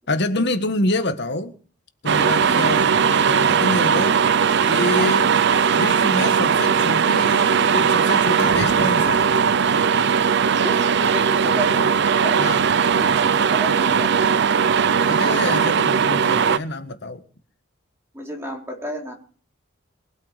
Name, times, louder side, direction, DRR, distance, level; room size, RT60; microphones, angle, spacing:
voice 1, 0.1-1.5 2.0-4.2 4.7-5.3 5.7-9.3 12.4-12.6 15.1-17.2, left 1 dB, 55° left, 1.6 m, -26 dB
sound 1, 2.1-16.6, right 6 dB, 55° right, 0.5 m, -18 dB
voice 2, 10.6-11.9 12.2-12.5 12.9-14.5 18.1-19.1, right 1 dB, 15° right, 4.3 m, -31 dB
23.0 x 8.3 x 5.0 m
head